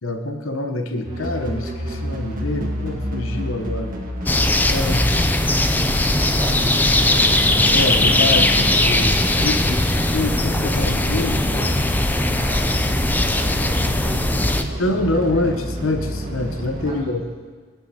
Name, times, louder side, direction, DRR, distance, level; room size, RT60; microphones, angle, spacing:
voice 1, 0.0-4.0 4.7-5.0 7.7-11.8 14.8-17.2, left 2 dB, 80° left, 6 dB, 0.9 m, -25 dB
sound 1, 1.0-17.0, equal, 45° right, 1.6 m, -29 dB
sound 2, 4.3-14.6, left 2 dB, 10° left, 0.4 m, -19 dB
voice 2, 6.1-7.4 12.3-15.4 16.9-17.1, right 1 dB, 25° right, -3 dB, 2.0 m, -38 dB
17.0 x 9.3 x 2.8 m, 1.5 s
head